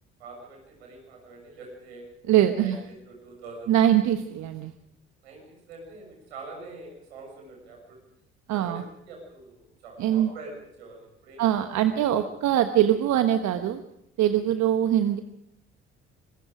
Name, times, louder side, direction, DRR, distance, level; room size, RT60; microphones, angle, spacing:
voice 1, 0.2-2.0 2.6-2.8 3.1-3.7 5.2-8.0 8.5-11.5 12.0-12.3 14.5-14.6, right 3 dB, 85° right, 0 dB, 7.0 m, -44 dB
voice 2, 2.3-2.8 3.7-4.7 8.5-8.8 10.0-10.3 11.4-13.8 14.2-15.2, right 11 dB, 60° right, 9 dB, 1.2 m, -22 dB
25.0 x 21.0 x 5.1 m, 0.79 s
hypercardioid pair, 55°, 31 cm